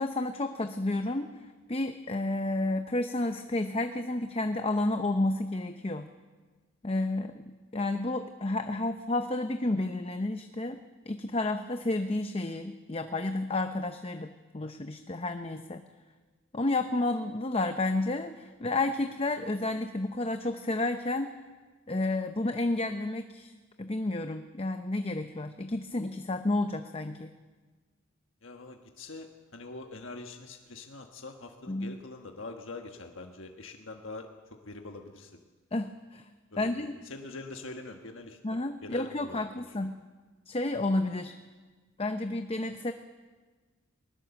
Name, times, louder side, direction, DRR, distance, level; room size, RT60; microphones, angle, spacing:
voice 1, 0.0-6.1 6.8-7.4 7.7-10.8 11.1-15.8 16.5-21.3 21.9-23.5 23.8-27.3 31.7-32.0 35.7-36.2 36.6-36.9 38.4-40.0 40.5-41.3 42.0-42.9, left 2 dB, 30° left, 7 dB, 0.7 m, -31 dB
voice 2, 28.4-34.3 34.6-35.3 36.5-39.6, left 3 dB, 70° left, 3 dB, 1.4 m, -44 dB
20.0 x 19.5 x 7.0 m, 1.4 s
head